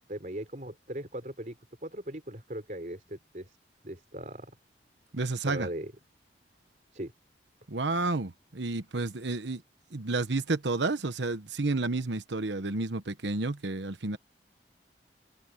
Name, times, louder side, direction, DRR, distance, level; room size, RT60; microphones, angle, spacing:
voice 1, 0.1-1.6 1.8-3.6 3.8-4.5 5.5-5.9 6.9-7.1, right 1 dB, 45° right, 4.2 m, -39 dB
voice 2, 5.1-5.7 7.7-9.6 9.9-14.2, right 3 dB, 85° right, 1.1 m, -31 dB
head